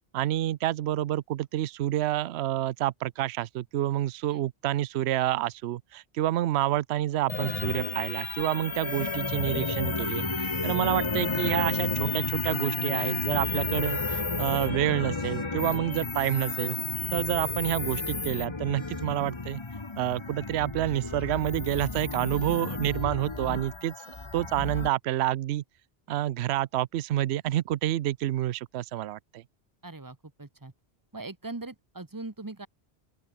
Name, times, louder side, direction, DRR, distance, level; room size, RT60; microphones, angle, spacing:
voice 1, 0.1-16.8 17.1-19.6 20.0-25.6 26.1-29.4, right 13 dB, 75° right, 0.8 m, -28 dB
sound 1, 7.3-24.9, left 3 dB, 25° left, 1.2 m, -32 dB
voice 2, 29.8-30.7 31.1-32.7, right 2 dB, 20° right, 1.2 m, -40 dB
open air
omnidirectional pair, 1.1 m